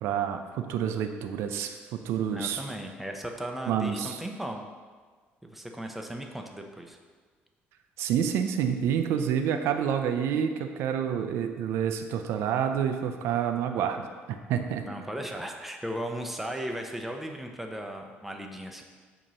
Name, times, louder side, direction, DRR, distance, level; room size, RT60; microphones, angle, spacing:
voice 1, 0.0-2.8 3.7-4.2 8.0-14.8, right 8 dB, 80° right, 7 dB, 0.5 m, -28 dB
voice 2, 2.3-4.7 5.4-7.0 14.8-18.8, right 1 dB, 5° right, 3 dB, 0.6 m, -36 dB
7.5 x 3.0 x 5.4 m, 1.5 s
cardioid pair, 125°, 4 cm